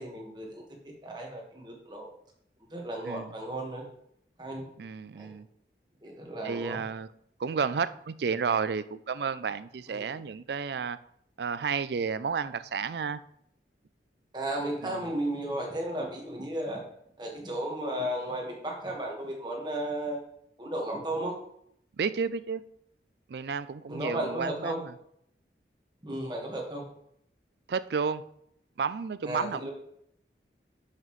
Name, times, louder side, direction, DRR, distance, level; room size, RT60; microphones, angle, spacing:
voice 1, 0.0-2.1 2.7-3.8 4.4-4.7 5.1-5.3 6.0-6.8 9.9-10.1 14.3-16.8 17.2-20.2 20.6-21.4 23.9-24.8 26.0-26.8 29.2-29.7, right 1 dB, 25° right, 0 dB, 1.5 m, -34 dB
voice 2, 4.8-5.5 6.4-7.1 7.4-11.0 11.4-13.2 14.8-15.0 22.0-22.6 23.3-24.9 27.7-28.2 28.8-29.7, right 5 dB, 70° right, 15 dB, 0.4 m, -31 dB
10.5 x 5.8 x 3.2 m, 0.72 s
head